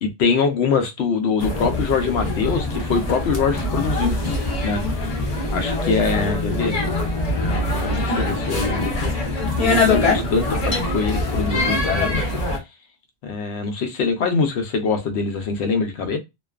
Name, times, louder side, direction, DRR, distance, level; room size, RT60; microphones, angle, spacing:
voice 1, 0.0-4.2 4.6-5.1 5.5-6.8 7.3-9.1 9.6-12.2 13.2-16.2, left 5 dB, 85° left, 0.9 m, -23 dB
sound 1, 1.4-12.6, left 2 dB, 40° left, 0.7 m, -23 dB
2.5 x 2.2 x 2.3 m
omnidirectional pair, 1.1 m